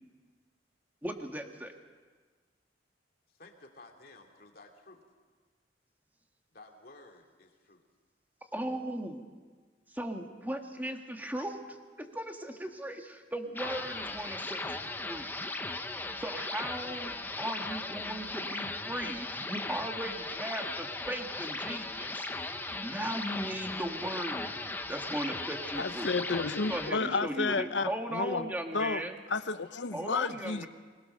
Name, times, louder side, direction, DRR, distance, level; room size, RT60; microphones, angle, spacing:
voice 1, 1.0-1.7 8.5-9.3 9.9-15.3 16.2-22.3 22.8-24.5 24.9-26.1 26.7-29.2 29.9-30.7, right 1 dB, 10° right, 1.6 m, -37 dB
voice 2, 3.3-5.0 6.5-7.8, left 2 dB, 55° left, 2.6 m, -54 dB
sound 1, 13.6-26.9, left 2 dB, 10° left, 0.9 m, -37 dB
voice 3, 25.8-29.0 29.3-30.7, left 4 dB, 80° left, 0.9 m, -32 dB
25.0 x 20.5 x 6.5 m
head